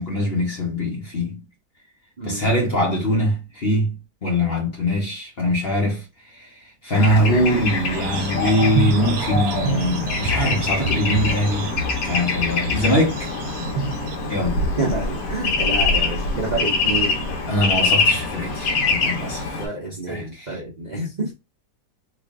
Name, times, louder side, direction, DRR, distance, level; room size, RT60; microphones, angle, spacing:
voice 1, 0.0-1.4 2.2-11.7 12.0-13.3 14.3-14.6 17.5-19.4 20.1-20.6, equal, 45° left, 1.0 m, -22 dB
Bird / Traffic noise roadway noise, 6.9-19.7, left 3 dB, 65° left, 1.2 m, -24 dB
sound 1, 7.9-14.2, right 3 dB, 85° right, 1.2 m, -29 dB
voice 2, 14.8-17.3 19.6-21.3, right 2 dB, 35° right, 0.7 m, -28 dB
3.1 x 2.5 x 3.6 m
omnidirectional pair, 1.7 m